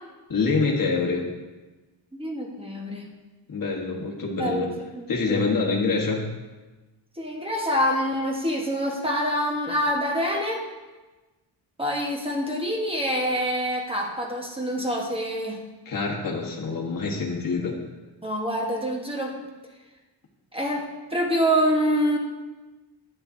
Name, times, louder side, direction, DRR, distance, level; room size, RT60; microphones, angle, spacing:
voice 1, 0.3-1.2 3.5-4.7 5.1-6.3 15.8-17.8, left 4 dB, 50° left, -1 dB, 1.3 m, -25 dB
voice 2, 2.1-3.1 4.4-5.5 7.2-10.6 11.8-15.6 18.2-19.3 20.5-20.9 21.1-22.2, equal, 15° right, -1 dB, 1.1 m, -26 dB
9.6 x 8.8 x 2.6 m, 1.2 s
wide cardioid pair, 145°, 44 cm